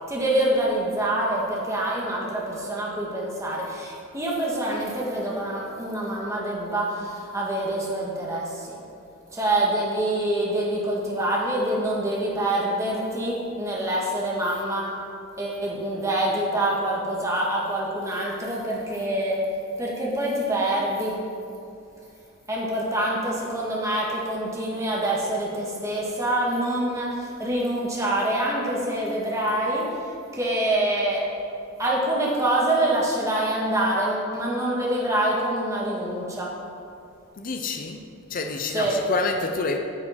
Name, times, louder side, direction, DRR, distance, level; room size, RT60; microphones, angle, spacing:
voice 1, 0.1-8.7 9.3-14.9 15.4-19.4 19.8-21.1 22.5-29.8 30.3-31.2 31.8-36.5 38.7-39.0, right 1 dB, 15° right, -4 dB, 1.6 m, -26 dB
voice 2, 37.4-39.8, left 3 dB, 40° left, 5 dB, 0.6 m, -28 dB
9.3 x 6.6 x 5.6 m, 2.6 s
head